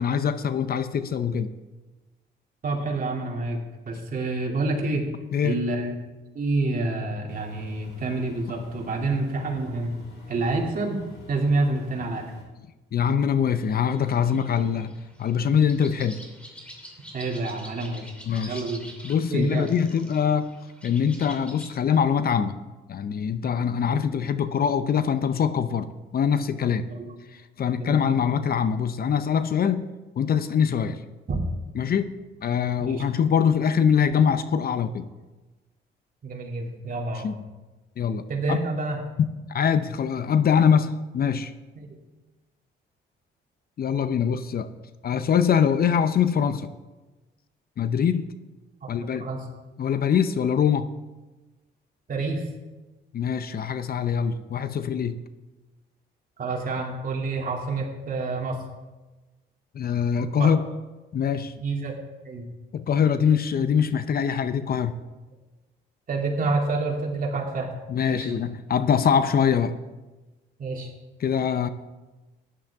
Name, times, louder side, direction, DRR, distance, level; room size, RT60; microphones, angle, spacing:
voice 1, 0.0-1.5 5.3-5.6 12.9-14.9 15.2-16.2 18.3-18.6 19.0-20.5 20.8-22.6 22.9-26.8 27.3-29.9 30.2-31.0 31.7-32.1 32.4-35.1 37.2-37.4 38.0-38.6 39.2-41.5 43.8-44.7 45.0-46.7 47.8-48.3 48.9-49.3 49.8-50.9 53.1-55.2 59.7-60.6 61.1-61.5 62.7-65.0 67.9-69.8 71.2-71.7, left 7 dB, 50° left, 12 dB, 0.7 m, -23 dB
voice 2, 2.6-3.6 3.8-5.1 5.4-6.0 6.3-9.9 10.3-11.0 11.3-12.2 17.1-18.1 18.5-18.8 19.3-19.7 26.9-27.2 27.8-28.1 31.3-31.4 32.8-33.0 36.2-37.3 38.3-39.0 41.7-41.9 48.8-49.4 52.1-52.5 56.4-58.6 60.4-60.5 61.6-61.9 62.2-62.5 66.1-67.7 68.1-68.3 70.6-70.9, right 3 dB, 45° right, -1 dB, 2.7 m, -28 dB
Engine, 7.3-12.4, left 2 dB, 85° left, 3.4 m, -46 dB
sound 1, 13.6-21.7, equal, 5° left, 2.8 m, -46 dB
14.5 x 10.5 x 3.6 m, 1.2 s
cardioid pair, 90°, 20 cm